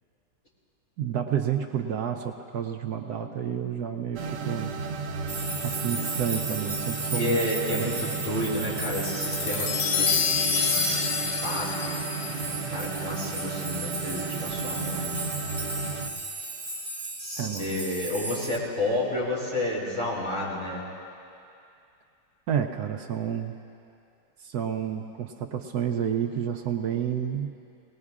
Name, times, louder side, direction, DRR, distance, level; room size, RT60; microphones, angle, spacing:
voice 1, 1.0-4.7 5.6-7.4 7.7-8.1 17.4-17.8 22.5-23.6 24.4-27.5, right 9 dB, 70° right, 4 dB, 1.1 m, -30 dB
sound 1, 4.1-16.1, right 5 dB, 85° right, 1.4 m, -34 dB
sound 2, 5.3-18.6, right 2 dB, 25° right, 1.1 m, -36 dB
voice 2, 7.1-10.8 11.4-12.1 12.7-15.2 17.2-20.9, left 1 dB, 50° left, -6 dB, 4.4 m, -31 dB
sound 3, 9.3-13.9, left 5 dB, 75° left, 1.5 m, -28 dB
19.5 x 19.5 x 2.4 m, 2.5 s
omnidirectional pair, 1.9 m